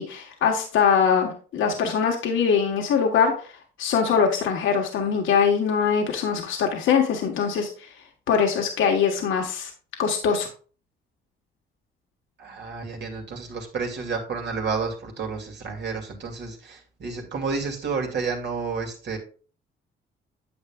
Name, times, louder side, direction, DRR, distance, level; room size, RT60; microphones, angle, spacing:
voice 1, 0.0-3.3 3.8-7.7 8.3-9.7 10.0-10.5, left 6 dB, 80° left, 2 dB, 1.3 m, -22 dB
voice 2, 12.4-19.2, right 4 dB, 60° right, 1 dB, 2.4 m, -30 dB
9.3 x 7.3 x 2.3 m, 0.39 s
cardioid pair, 90°, 20 cm